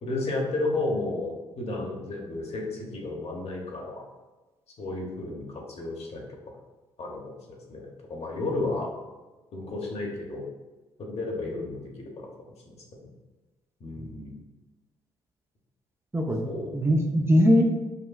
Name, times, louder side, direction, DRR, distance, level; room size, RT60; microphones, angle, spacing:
voice 1, 0.0-4.0 4.8-6.2 7.0-8.9 9.5-10.4 11.0-13.1 13.8-14.4 16.4-16.9, left 2 dB, 50° left, -1 dB, 1.0 m, -33 dB
voice 2, 16.1-17.6, equal, 20° right, 1 dB, 0.5 m, -21 dB
5.3 x 2.2 x 2.3 m, 1.2 s
hypercardioid pair, 50°, 13 cm